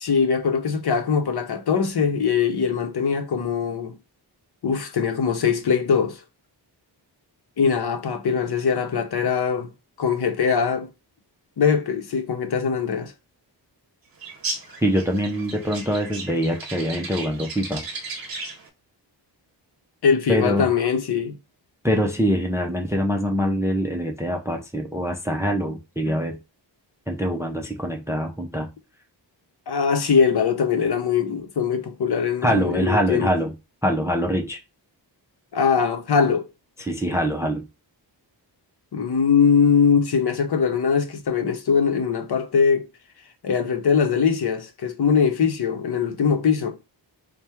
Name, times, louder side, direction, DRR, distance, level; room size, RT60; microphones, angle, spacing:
voice 1, 0.0-3.9 4.6-6.2 7.6-9.7 10.0-10.9 11.6-13.1 20.0-21.4 29.7-33.3 35.5-36.5 38.9-42.9 43.4-46.7, left 6 dB, 60° left, 0.8 m, -21 dB
sound 1, 14.2-18.7, right 3 dB, 50° right, 0.7 m, -35 dB
voice 2, 14.8-17.8 20.3-20.7 21.8-26.4 27.1-28.7 32.4-33.5 33.8-34.6 36.8-37.7, equal, 5° right, 0.4 m, -24 dB
4.3 x 2.1 x 3.4 m
wide cardioid pair, 140°, 44 cm